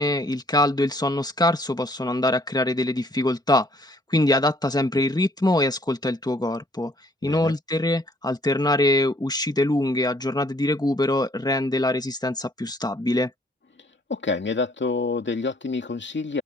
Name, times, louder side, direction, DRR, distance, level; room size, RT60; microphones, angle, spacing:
voice 1, 0.0-6.9 7.2-13.3, left 1 dB, 20° left, 1.9 m, -23 dB
voice 2, 7.2-7.5 14.1-16.4, left 4 dB, 75° left, 2.4 m, -27 dB
open air
wide cardioid pair, 65°, 19 cm